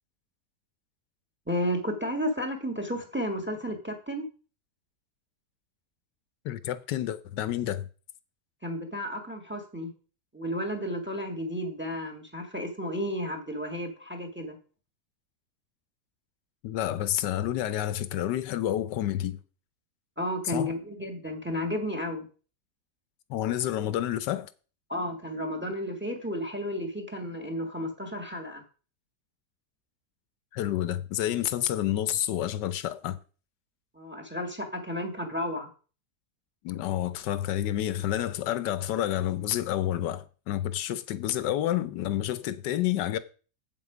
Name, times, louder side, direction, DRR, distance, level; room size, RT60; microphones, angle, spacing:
voice 1, 1.5-4.2 8.6-9.9 10.3-14.6 20.2-22.3 24.9-28.6 33.9-35.7, equal, 5° right, 1.5 m, -32 dB
voice 2, 6.4-7.9 16.6-19.4 20.5-20.7 23.3-24.5 30.5-33.2 36.6-43.2, left 12 dB, 85° left, 1.3 m, -29 dB
7.9 x 7.6 x 5.0 m
omnidirectional pair, 1.8 m